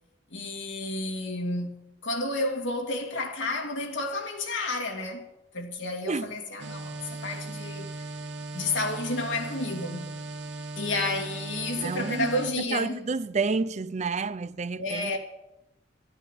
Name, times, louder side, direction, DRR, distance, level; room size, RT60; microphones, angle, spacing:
voice 1, 0.3-5.3 5.5-7.9 8.5-10.1 10.8-13.1 14.8-15.2, left 2 dB, 75° left, 2.3 m, -31 dB
DV tape noise, 6.6-12.5, right 2 dB, 65° right, 1.2 m, -38 dB
voice 2, 11.8-12.3 12.7-15.1, right 4 dB, 35° right, 0.5 m, -29 dB
12.5 x 10.0 x 9.1 m
head